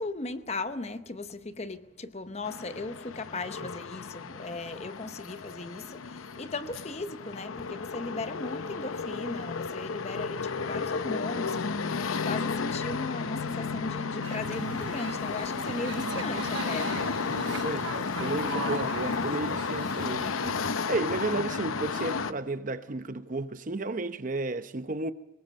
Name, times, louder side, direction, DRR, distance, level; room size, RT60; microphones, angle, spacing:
voice 1, 0.0-17.1, left 2 dB, 30° left, 0.8 m, -37 dB
sound 1, 2.4-22.3, left 5 dB, 90° left, 0.8 m, -33 dB
sound 2, 14.2-20.3, right 4 dB, 65° right, 0.9 m, -39 dB
voice 2, 17.5-17.9 18.2-20.6 20.9-25.1, right 3 dB, 40° right, 0.7 m, -33 dB
24.0 x 20.5 x 5.3 m
head